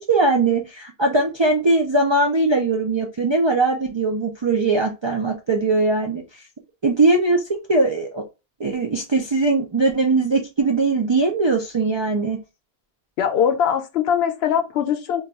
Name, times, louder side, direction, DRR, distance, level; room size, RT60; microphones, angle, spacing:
voice 1, 0.1-6.4 6.8-8.2 8.6-12.4, right 3 dB, 50° right, 0.3 m, -20 dB
voice 2, 13.2-15.2, left 8 dB, 75° left, 0.8 m, -21 dB
2.3 x 2.3 x 3.9 m
omnidirectional pair, 1.1 m